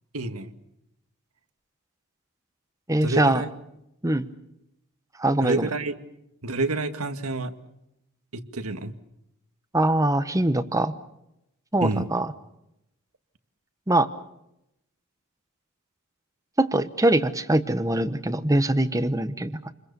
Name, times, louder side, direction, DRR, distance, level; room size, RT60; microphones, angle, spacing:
voice 1, 0.1-0.5 3.0-3.5 5.4-5.9 6.4-7.5 8.3-8.9 11.8-12.1, right 2 dB, 90° right, 8 dB, 1.9 m, -28 dB
voice 2, 2.9-3.4 4.0-4.3 5.2-5.7 9.7-10.9 11.7-12.3 13.9-14.1 16.6-19.7, right 1 dB, 15° right, 12 dB, 1.0 m, -23 dB
28.5 x 22.5 x 6.8 m, 0.83 s
head